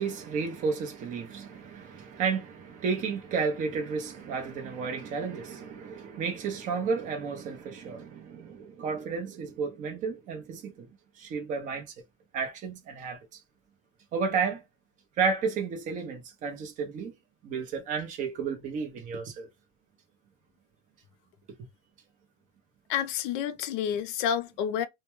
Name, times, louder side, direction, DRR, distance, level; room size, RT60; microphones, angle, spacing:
voice 1, 0.0-10.9 11.2-11.8 12.3-13.2 14.1-14.6 15.2-17.1 17.4-19.5, right 5 dB, 25° right, 0.6 m, -32 dB
voice 2, 22.9-24.9, left 9 dB, 60° left, 0.5 m, -29 dB
2.2 x 2.2 x 2.9 m
supercardioid pair, 155°, 29 cm